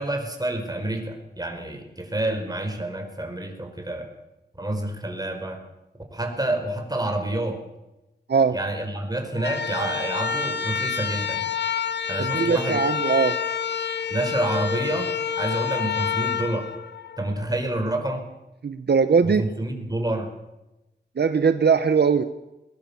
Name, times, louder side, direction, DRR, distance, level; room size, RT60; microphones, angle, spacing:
voice 1, 0.0-4.1 4.6-5.6 6.1-7.6 8.5-11.5 12.1-12.8 14.1-15.1 15.4-16.7 17.2-18.2 19.2-20.3, right 1 dB, 20° right, 4 dB, 5.0 m, -28 dB
sound 1, 9.3-17.5, left 7 dB, 75° left, 1.3 m, -28 dB
voice 2, 12.2-13.4 18.6-19.4 21.2-22.2, right 5 dB, 65° right, 10 dB, 1.0 m, -20 dB
21.0 x 21.0 x 7.2 m, 0.98 s
wide cardioid pair, 75°, 18 cm